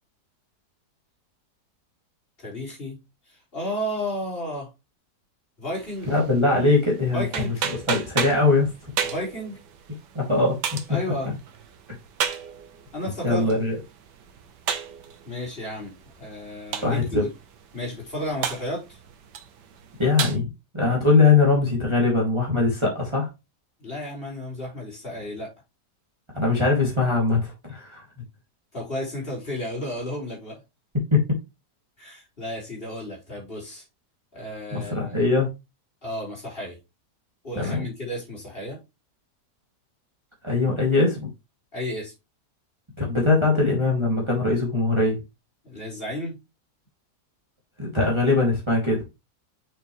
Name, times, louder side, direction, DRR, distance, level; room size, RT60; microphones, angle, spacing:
voice 1, 2.4-3.0 3.3-4.7 5.6-6.1 7.1-7.5 9.0-9.6 10.9-11.4 12.9-13.5 15.2-15.9 16.2-17.3 17.7-19.0 23.8-25.5 28.7-30.6 32.0-33.8 34.3-35.1 36.0-36.8 37.4-38.8 41.7-42.1 45.6-46.4, left 1 dB, 35° left, 4.3 m, -32 dB
sound 1, 5.8-20.4, right 7 dB, 85° right, 1.6 m, -35 dB
voice 2, 6.1-7.2 7.9-8.7 10.1-10.6 13.2-13.7 16.8-17.2 20.0-20.5 20.7-23.3 26.3-28.0 31.1-31.2 34.7-35.5 37.6-37.8 40.4-41.3 43.0-45.2 47.8-49.0, left 3 dB, 15° right, 2.2 m, -21 dB
6.5 x 6.2 x 3.1 m
omnidirectional pair, 1.8 m